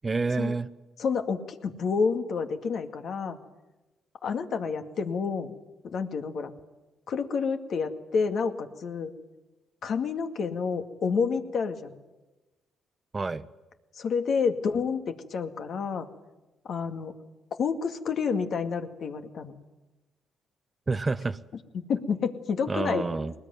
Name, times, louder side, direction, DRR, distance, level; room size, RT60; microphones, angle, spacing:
voice 1, 0.0-0.7 13.1-13.4 20.9-21.4 22.7-23.3, right 3 dB, 25° right, 13 dB, 0.9 m, -28 dB
voice 2, 1.0-3.4 4.2-5.5 5.8-6.5 7.1-9.1 9.8-12.0 13.9-16.1 16.6-17.1 17.6-19.5 21.7-23.1, left 5 dB, 60° left, 6 dB, 2.1 m, -29 dB
21.0 x 20.0 x 9.3 m, 1.1 s
cardioid pair, 90°, 0 cm